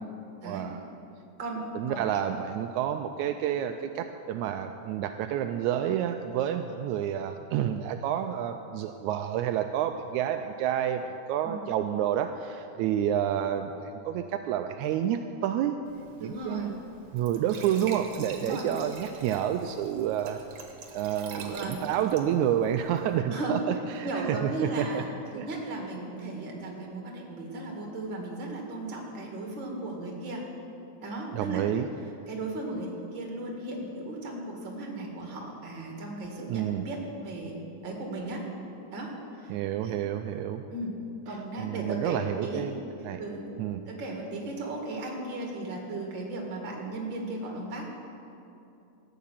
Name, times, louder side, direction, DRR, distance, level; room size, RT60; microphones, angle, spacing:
voice 1, 0.4-0.8 1.8-15.7 16.2-16.8 17.1-20.4 20.9-25.0 25.3-25.5 31.3-31.9 36.5-36.9 39.5-40.6 41.6-42.8 43.0-43.2 43.6-43.8, right 10 dB, 85° right, 6 dB, 1.9 m, -29 dB
voice 2, 1.4-2.2 11.4-11.7 16.2-16.7 18.4-18.7 21.3-21.9 23.3-23.6 24.0-25.1 25.3-30.4 31.0-31.6 32.3-38.5 38.9-39.5 39.8-40.0 40.7-41.0 41.3-42.6 43.2-43.5 43.9-47.8, right 2 dB, 40° right, 0 dB, 2.6 m, -36 dB
Glass / Trickle dribble / Fill (with liquid), 15.9-23.2, right 4 dB, 65° right, 2.4 m, -46 dB
14.0 x 9.4 x 7.3 m, 2.8 s
omnidirectional pair, 3.4 m